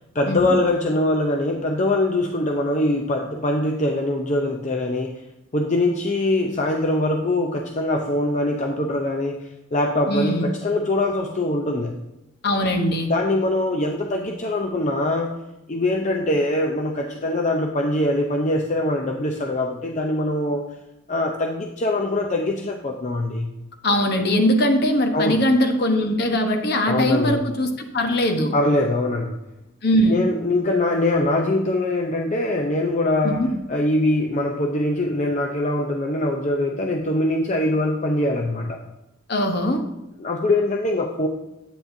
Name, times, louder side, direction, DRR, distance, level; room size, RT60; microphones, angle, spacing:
voice 1, 0.1-5.1 5.5-9.3 9.7-12.0 13.1-15.3 15.7-20.7 21.1-23.5 25.1-25.4 26.8-27.4 28.5-29.4 30.1-38.8 40.2-41.3, left 1 dB, 35° left, 1 dB, 0.6 m, -23 dB
voice 2, 10.1-10.5 12.4-13.1 23.8-28.5 29.8-30.2 33.2-33.5 39.3-39.8, equal, 55° left, 5 dB, 1.0 m, -21 dB
10.5 x 8.5 x 2.7 m, 0.93 s
head